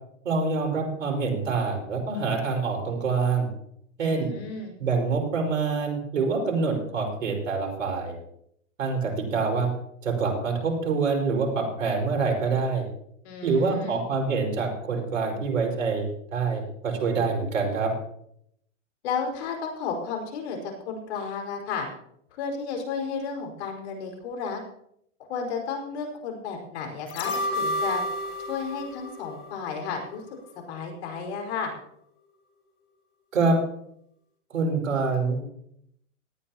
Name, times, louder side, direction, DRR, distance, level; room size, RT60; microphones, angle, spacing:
voice 1, 0.2-3.5 4.0-4.3 4.8-8.1 8.8-9.7 10.0-12.8 13.4-16.0 16.3-17.9 33.3-33.6 34.5-35.4, right 4 dB, 85° right, 2 dB, 5.1 m, -26 dB
voice 2, 4.0-4.7 13.2-14.0 19.0-21.9 22.3-24.6 25.3-28.0 28.5-30.2 30.5-31.7, left 5 dB, 60° left, 3 dB, 5.0 m, -33 dB
sound 1, 27.1-30.2 30.5-30.6, left 1 dB, 35° left, 3.4 m, -31 dB
18.0 x 13.5 x 2.9 m, 0.72 s
hypercardioid pair, 125°, 38 cm